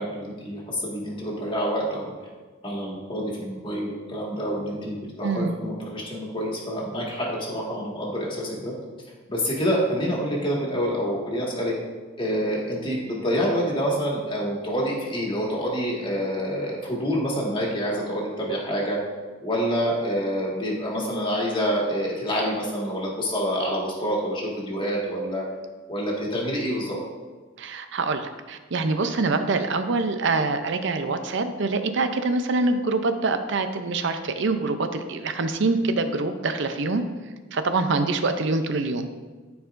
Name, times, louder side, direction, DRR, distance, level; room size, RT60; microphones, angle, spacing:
voice 1, 0.0-2.2 2.6-8.7 9.3-11.7 12.2-19.0 19.4-25.4 25.9-27.0, equal, 25° left, -4 dB, 1.8 m, -27 dB
voice 2, 5.2-5.6 27.6-37.0 37.5-39.2, right 3 dB, 65° right, 8 dB, 0.6 m, -25 dB
13.0 x 4.7 x 2.6 m, 1.4 s
head